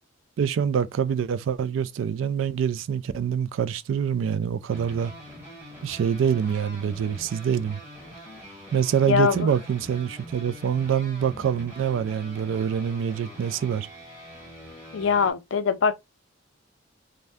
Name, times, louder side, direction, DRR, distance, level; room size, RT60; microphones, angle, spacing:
voice 1, 0.4-5.1 5.8-7.8 8.7-13.9, right 8 dB, 75° right, 0.3 m, -25 dB
sound 1, 4.7-15.3, right 1 dB, 10° right, 1.3 m, -44 dB
voice 2, 9.1-9.5 14.9-15.9, left 6 dB, 70° left, 0.4 m, -22 dB
2.6 x 2.1 x 3.3 m
head